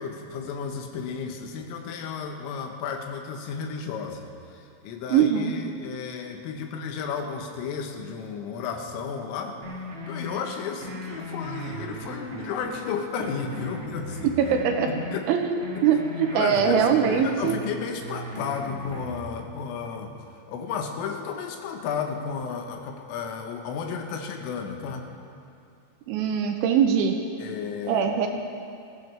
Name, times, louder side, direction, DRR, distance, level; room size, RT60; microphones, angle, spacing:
voice 1, 0.0-9.6 10.1-14.3 14.9-15.2 15.8-15.9 16.3-20.1 20.5-25.1 27.4-28.1, left 6 dB, 85° left, 4 dB, 3.7 m, -33 dB
voice 2, 5.1-5.6 14.2-14.9 15.3-17.6 26.1-27.2 27.9-28.3, right 7 dB, 85° right, 4 dB, 2.9 m, -22 dB
sound 1, 9.6-10.4 10.8-12.8 13.2-15.2 15.6-17.6 18.0-19.2, equal, 60° right, 1.2 m, -37 dB
20.5 x 15.5 x 3.4 m, 2.6 s
omnidirectional pair, 5.8 m